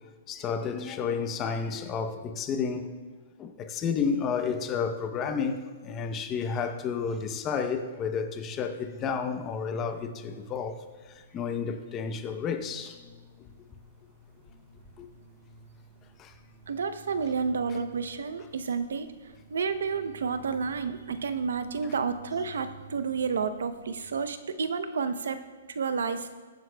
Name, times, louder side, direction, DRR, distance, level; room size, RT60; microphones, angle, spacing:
voice 1, 0.3-2.9 3.4-10.8 11.3-13.0 15.0-15.1 16.2-16.3, left 6 dB, 20° left, 0.8 m, -31 dB
sound 1, 8.8-24.0, right 2 dB, 20° right, 2.8 m, -53 dB
voice 2, 16.7-19.1 19.5-25.4 25.7-26.3, right 5 dB, 90° right, 0.7 m, -30 dB
21.5 x 7.6 x 2.3 m
hypercardioid pair, 160°, 0 cm